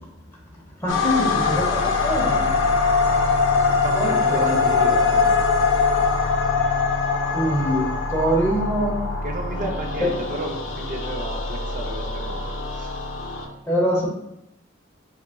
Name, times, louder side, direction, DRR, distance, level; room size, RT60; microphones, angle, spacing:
voice 1, 0.8-2.5 3.9-4.6 7.3-9.1 10.0-10.1 13.7-14.1, equal, 15° left, -3 dB, 0.8 m, -24 dB
sound 1, 0.9-13.5, left 4 dB, 70° left, 0.5 m, -22 dB
voice 2, 3.6-5.3 5.7-6.1 9.2-13.0, right 1 dB, 45° right, 2 dB, 0.5 m, -33 dB
3.9 x 3.5 x 2.2 m, 0.82 s
head